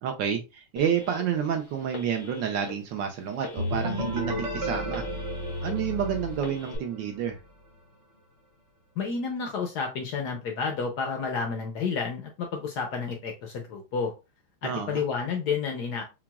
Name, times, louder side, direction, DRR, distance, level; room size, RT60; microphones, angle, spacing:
voice 1, 0.0-5.0 5.6-7.4 14.6-15.0, right 8 dB, 75° right, 4 dB, 1.1 m, -29 dB
Telephone, 0.8-1.5 1.9-2.7 3.4-4.2 4.6-5.7 6.3-6.8, left 4 dB, 90° left, 2.1 m, -41 dB
sound 1, 3.6-7.3, equal, 40° right, 0.9 m, -32 dB
voice 2, 9.0-14.1 14.6-16.0, left 5 dB, 75° left, 3 dB, 0.9 m, -30 dB
5.8 x 2.3 x 2.3 m, 0.27 s
omnidirectional pair, 2.4 m